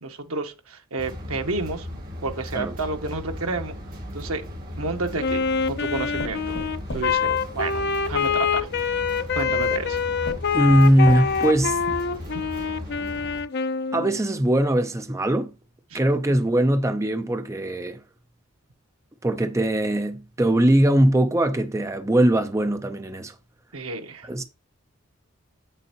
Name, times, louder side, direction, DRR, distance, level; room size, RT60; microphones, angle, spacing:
voice 1, 0.0-3.7 4.1-4.4 4.8-5.4 5.7-6.6 6.9-8.7 9.3-10.0 15.9-16.0 23.7-24.3, right 3 dB, 80° right, 1.2 m, -30 dB
sound 1, 1.0-13.4, left 1 dB, 45° right, 2.7 m, -37 dB
sound 2, 4.5-5.4 6.2-8.1 9.1-9.2 9.8-9.9 10.2-11.6 12.1-12.2 12.5-12.6, left 1 dB, 85° left, 2.1 m, -38 dB
Wind instrument woodwind instrument, 5.2-14.2, left 6 dB, 50° left, 0.5 m, -25 dB
voice 2, 10.5-11.8 13.9-15.5 15.9-18.0 19.2-23.3 24.2-24.4, right 1 dB, 15° right, 0.5 m, -21 dB
8.1 x 6.8 x 2.9 m
head